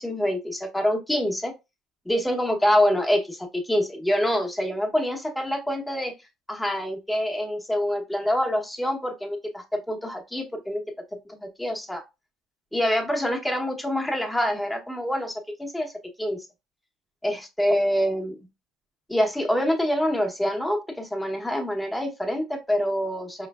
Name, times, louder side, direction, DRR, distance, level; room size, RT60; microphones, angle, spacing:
voice 1, 0.0-1.5 2.1-6.1 6.5-10.8 11.3-12.0 12.7-15.9 16.2-16.4 17.2-18.5 19.1-23.5, equal, 5° left, 1.0 m, -26 dB
4.9 x 3.1 x 2.4 m
cardioid pair, 115°, 0 cm